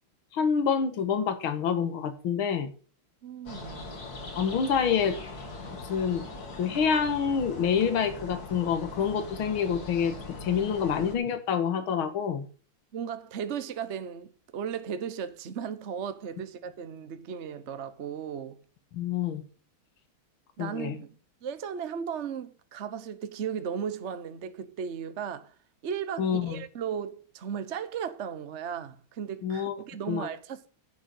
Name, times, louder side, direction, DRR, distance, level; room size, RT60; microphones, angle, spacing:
voice 1, 0.3-2.7 4.4-5.2 5.7-6.3 6.6-10.1 10.4-12.5 18.9-19.4 20.6-21.0 26.2-26.6 29.4-29.8 30.1-30.3, left 7 dB, 75° left, 2.3 m, -27 dB
voice 2, 3.2-3.9 12.9-18.6 20.6-21.1 21.4-25.5 25.8-30.7, right 7 dB, 55° right, 0.8 m, -36 dB
sound 1, 3.5-11.2, left 2 dB, 45° left, 2.8 m, -41 dB
10.5 x 6.5 x 8.1 m
omnidirectional pair, 2.3 m